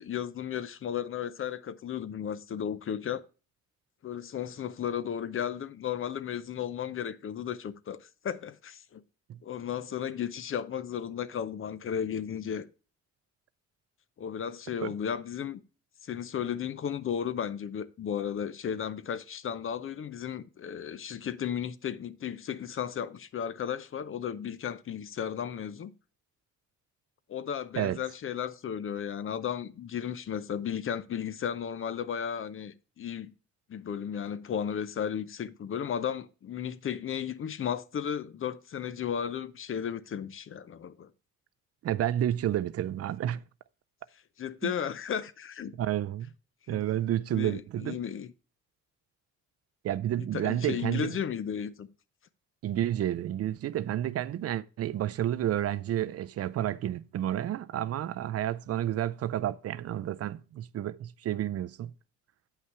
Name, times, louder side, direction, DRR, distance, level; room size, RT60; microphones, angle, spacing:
voice 1, 0.0-3.2 4.0-9.0 9.4-12.6 14.2-15.6 16.0-25.9 27.3-33.3 33.7-41.1 44.4-45.7 46.7-46.8 47.3-48.3 50.3-51.9, left 8 dB, 45° left, 0.6 m, -34 dB
voice 2, 41.8-43.4 44.6-44.7 45.8-46.3 46.7-48.0 49.8-51.2 52.6-61.9, right 12 dB, 55° right, 0.4 m, -30 dB
8.3 x 5.7 x 4.5 m
cardioid pair, 90°, 30 cm